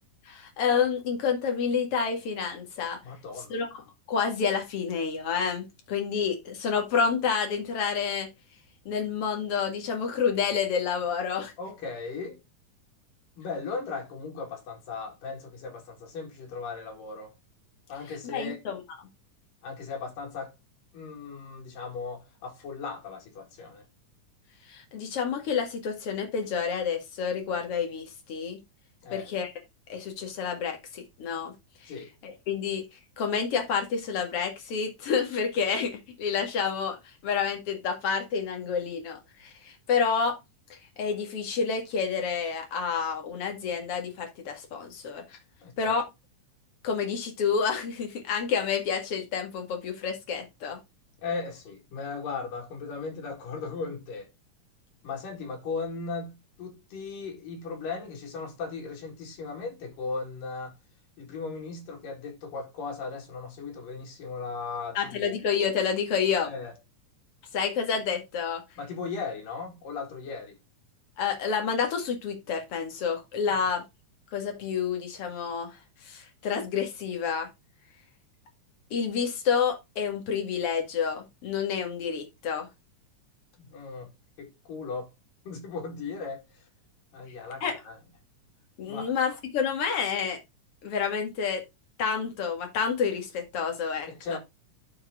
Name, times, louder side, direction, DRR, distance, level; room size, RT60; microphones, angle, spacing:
voice 1, 0.3-3.0 3.5-3.7 4.1-8.3 8.9-11.5 18.1-18.8 24.7-28.6 29.1-29.5 29.9-31.5 31.8-31.9 32.2-32.8 33.2-40.4 40.7-45.4 45.8-46.0 46.8-50.8 64.9-66.5 67.5-68.6 71.2-73.8 74.3-77.5 78.9-82.7 87.6-87.8 88.8-90.4 90.8-91.7 92.0-94.4, left 6 dB, 50° left, 2.6 m, -29 dB
voice 2, 3.0-3.6 11.6-12.4 13.4-17.3 17.9-18.6 19.6-20.5 20.9-23.9 29.0-29.3 31.9-32.1 45.6-46.0 51.2-54.3 55.0-60.8 61.2-65.4 66.4-66.7 68.8-70.6 73.5-73.6 83.6-84.1 84.4-85.1 85.5-86.6 87.1-88.0 88.8-89.1 94.1-94.4, left 4 dB, 90° left, 3.9 m, -37 dB
11.5 x 4.7 x 3.7 m
omnidirectional pair, 3.7 m